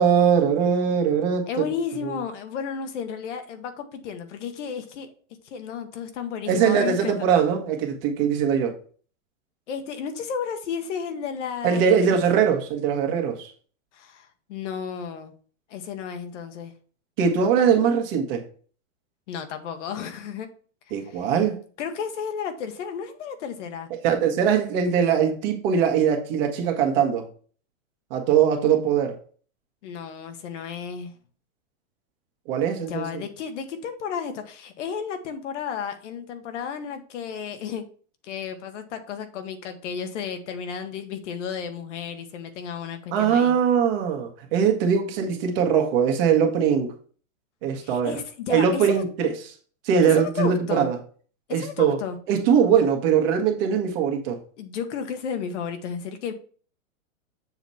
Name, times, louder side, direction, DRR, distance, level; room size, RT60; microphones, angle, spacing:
voice 1, 0.0-1.5 6.5-8.8 11.6-13.5 17.2-18.4 20.9-21.6 24.0-27.3 28.1-29.2 32.5-33.2 43.1-47.0 47.6-48.2 48.5-49.3 49.8-51.0 51.5-52.0 52.3-54.4, right 7 dB, 45° right, 1.5 m, -21 dB
voice 2, 1.5-5.1 5.4-7.4 9.7-12.2 13.9-15.3 15.7-16.7 19.3-20.5 21.0-21.3 21.8-23.9 29.8-31.2 32.9-37.8 38.2-43.5 47.8-49.0 50.0-50.9 51.5-52.2 54.6-56.3, left 7 dB, 65° left, 1.2 m, -33 dB
7.1 x 3.0 x 5.4 m
hypercardioid pair, 145°, 40 cm